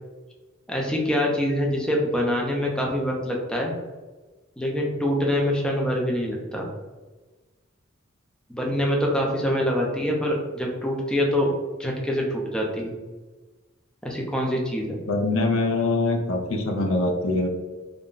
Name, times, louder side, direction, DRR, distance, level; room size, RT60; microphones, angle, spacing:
voice 1, 0.7-3.7 4.6-6.7 8.5-11.5 11.8-12.9 14.0-15.0, equal, 5° left, -1 dB, 0.4 m, -25 dB
voice 2, 15.1-17.5, left 2 dB, 70° left, 3 dB, 0.5 m, -23 dB
2.4 x 2.1 x 3.6 m, 1.3 s
head